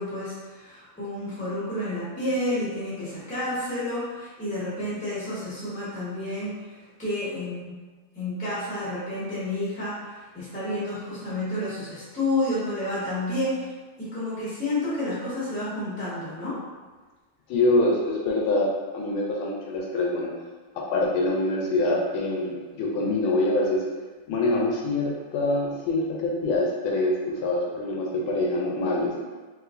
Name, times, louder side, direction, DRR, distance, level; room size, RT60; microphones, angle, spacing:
voice 1, 0.0-7.8 8.1-13.7 14.0-16.6, left 1 dB, 10° left, -10 dB, 0.5 m, -30 dB
voice 2, 17.5-18.7 18.9-20.3 20.7-23.9 24.3-29.2, left 2 dB, 75° left, -2 dB, 1.3 m, -25 dB
3.3 x 3.0 x 2.5 m, 1.3 s
omnidirectional pair, 2.4 m